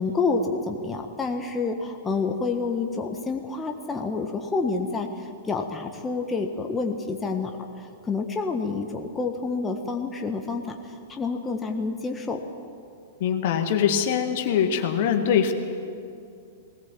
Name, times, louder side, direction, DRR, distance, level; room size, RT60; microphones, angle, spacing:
voice 1, 0.0-12.4, left 4 dB, 15° left, 3 dB, 1.4 m, -28 dB
voice 2, 13.2-15.5, left 8 dB, 50° left, 6 dB, 1.9 m, -23 dB
20.0 x 19.0 x 7.4 m, 2.4 s
figure-of-eight pair, 100°, 0 cm